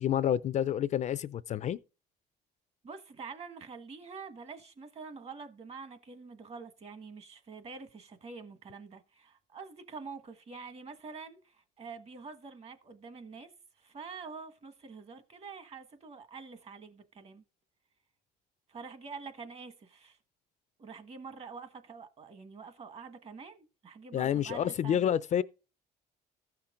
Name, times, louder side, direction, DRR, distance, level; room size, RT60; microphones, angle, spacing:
voice 1, 0.0-1.8 24.1-25.4, left 10 dB, 45° left, 0.4 m, -29 dB
voice 2, 2.8-13.5 13.8-17.4 18.7-20.2 20.8-25.1, right 5 dB, 40° right, 1.4 m, -46 dB
14.0 x 5.8 x 3.7 m
cardioid pair, 110°, 17 cm